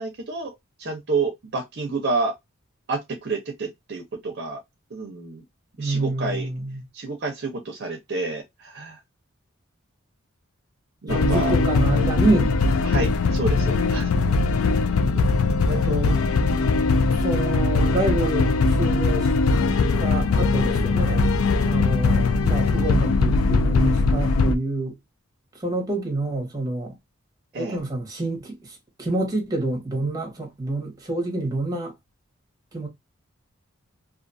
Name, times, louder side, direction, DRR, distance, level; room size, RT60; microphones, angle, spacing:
voice 1, 0.0-2.3 2.9-4.6 4.9-5.4 5.8-6.5 6.9-9.0 11.0-11.6 12.8-14.1 27.5-27.8, right 3 dB, 55° right, 0.6 m, -29 dB
voice 2, 5.8-6.8 11.1-12.5 15.6-16.2 17.2-19.3 20.0-21.3 21.6-24.9 25.6-27.0 27.5-31.9 32.7-32.9, right 2 dB, 20° right, 1.0 m, -27 dB
sound 1, 11.1-24.6, left 3 dB, 90° left, 0.4 m, -20 dB
2.5 x 2.4 x 2.5 m
head